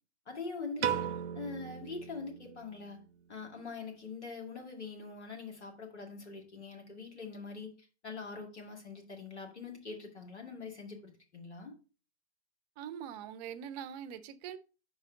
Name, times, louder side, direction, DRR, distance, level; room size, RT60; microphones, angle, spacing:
voice 1, 0.3-1.0 1.3-3.0 3.3-11.7, left 4 dB, 85° left, 2.2 m, -43 dB
Piano, 0.8-3.1, right 9 dB, 75° right, 0.6 m, -37 dB
voice 2, 12.8-14.6, right 9 dB, 40° right, 0.7 m, -43 dB
5.6 x 4.7 x 5.0 m
hypercardioid pair, 115°, 33 cm